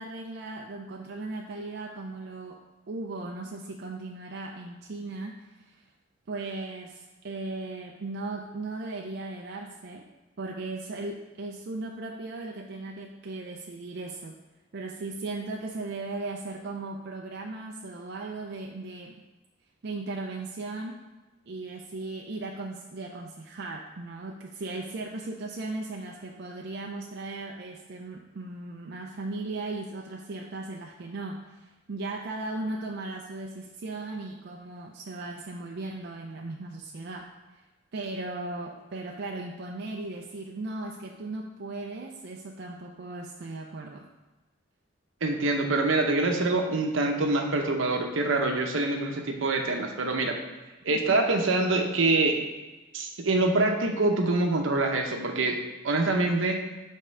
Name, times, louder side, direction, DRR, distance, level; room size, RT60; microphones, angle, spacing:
voice 1, 0.0-2.6 2.9-5.8 6.3-10.1 10.4-14.4 14.7-19.2 19.8-21.0 21.5-37.6 37.9-44.1 51.1-51.2, right 2 dB, 60° right, 1 dB, 0.4 m, -37 dB
voice 2, 45.2-50.4 50.8-52.4 52.9-55.6 55.8-56.6, right 2 dB, 80° right, 3 dB, 0.8 m, -25 dB
5.3 x 3.7 x 5.4 m, 1.2 s
head